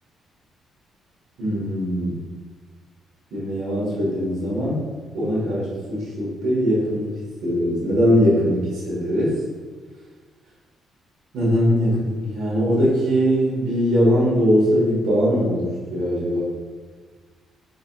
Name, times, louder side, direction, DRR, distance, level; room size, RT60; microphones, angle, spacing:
voice 1, 1.4-2.2 3.3-4.9 5.1-7.1 7.4-9.4 11.3-16.4, equal, 80° right, -7 dB, 1.4 m, -21 dB
4.3 x 4.0 x 2.4 m, 1.5 s
cardioid pair, 90°, 0 cm